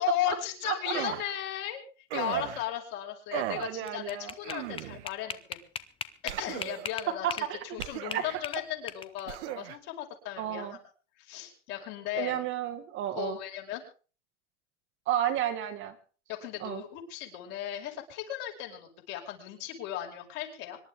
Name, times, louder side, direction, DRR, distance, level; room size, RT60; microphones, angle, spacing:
voice 1, 0.0-1.8 2.1-5.6 6.2-10.8 11.2-12.4 13.2-13.8 16.3-20.8, left 12 dB, 50° left, 1 dB, 5.6 m, -36 dB
sound 1, 0.9-1.3 2.1-2.7 3.3-3.7 4.4-5.1 6.3-7.0 7.8-8.4 9.3-9.8, right 17 dB, 60° right, 1.1 m, -37 dB
voice 2, 3.5-4.3 7.1-7.6 8.1-8.2 10.4-10.8 12.1-13.4 15.1-16.0 16.6-16.8, right 11 dB, 35° right, 7 dB, 1.7 m, -32 dB
sound 2, 3.6-7.5 7.8-9.3, left 7 dB, 15° left, 0.8 m, -38 dB
25.5 x 11.5 x 3.5 m, 0.38 s
supercardioid pair, 150°, 37 cm